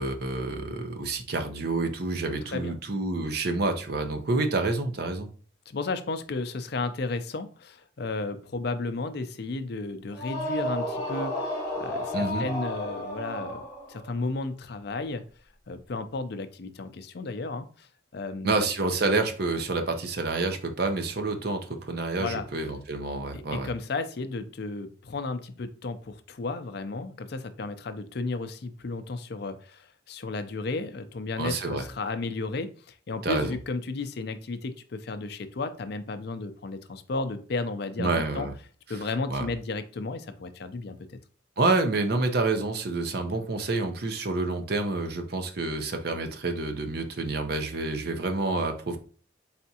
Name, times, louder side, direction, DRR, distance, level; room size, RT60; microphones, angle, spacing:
voice 1, 0.0-5.3 12.1-12.4 18.4-23.7 31.4-31.8 33.2-33.6 38.0-38.5 39.3-39.5 41.6-49.0, right 3 dB, 55° right, 6 dB, 0.6 m, -28 dB
voice 2, 5.7-11.5 11.8-13.6 13.9-15.2 15.7-17.9 18.1-18.6 22.2-22.5 23.3-38.5 38.9-41.2, left 3 dB, 55° left, 10 dB, 0.5 m, -33 dB
sound 1, 10.1-14.1, left 1 dB, 15° left, 1.3 m, -32 dB
4.1 x 3.4 x 2.8 m, 0.42 s
head